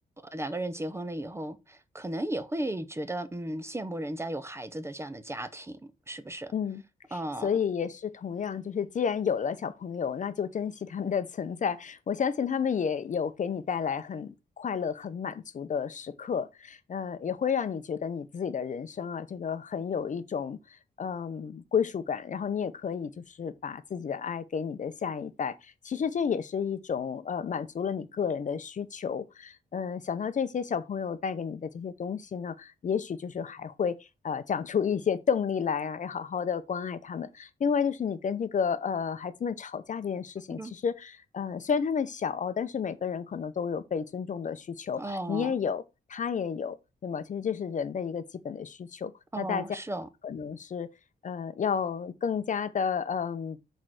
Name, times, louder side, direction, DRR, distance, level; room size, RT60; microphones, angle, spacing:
voice 1, 0.3-5.8 6.1-6.5 7.1-7.5 40.6-40.7 45.0-45.5 49.3-50.1, right 1 dB, 15° right, 0.8 m, -35 dB
voice 2, 7.1-45.8 46.1-46.8 47.0-49.7 50.2-50.9 51.2-53.6, left 7 dB, 45° left, 0.7 m, -31 dB
6.5 x 4.5 x 6.4 m
wide cardioid pair, 125°, 17 cm